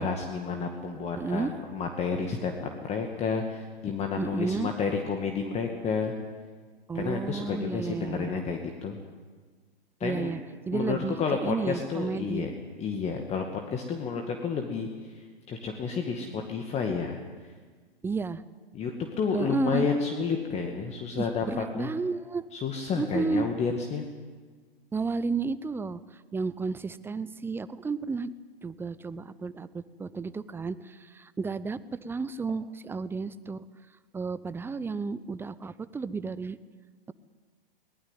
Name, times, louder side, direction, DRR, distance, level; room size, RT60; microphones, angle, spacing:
voice 1, 0.0-6.1 6.9-9.0 10.0-10.3 10.7-12.5 12.8-13.4 13.7-14.9 15.1-17.2 18.7-18.9 19.2-21.9 22.5-24.0, left 5 dB, 20° left, 4 dB, 2.2 m, -30 dB
voice 2, 1.2-1.5 4.2-4.7 6.9-8.3 10.0-10.4 10.7-12.4 18.0-18.4 19.3-19.9 21.2-22.5 23.0-23.5 24.9-26.0 26.3-28.3 28.6-33.6 34.1-36.6, right 4 dB, 10° right, 16 dB, 0.7 m, -32 dB
22.5 x 20.0 x 9.2 m, 1.4 s
figure-of-eight pair, 110°, 29 cm